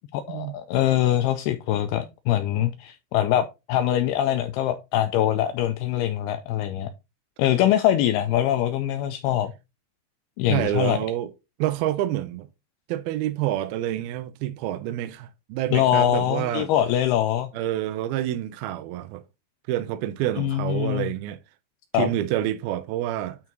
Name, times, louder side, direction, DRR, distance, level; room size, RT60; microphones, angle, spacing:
voice 1, 0.1-6.9 7.4-9.5 10.4-11.0 15.7-17.5 20.4-21.1 21.9-22.1, left 12 dB, 85° left, 2.3 m, -23 dB
voice 2, 10.5-11.3 11.6-12.5 12.9-16.7 17.5-19.2 19.7-21.4 22.0-23.4, right 13 dB, 80° right, 2.2 m, -28 dB
9.5 x 4.6 x 3.9 m
omnidirectional pair, 5.1 m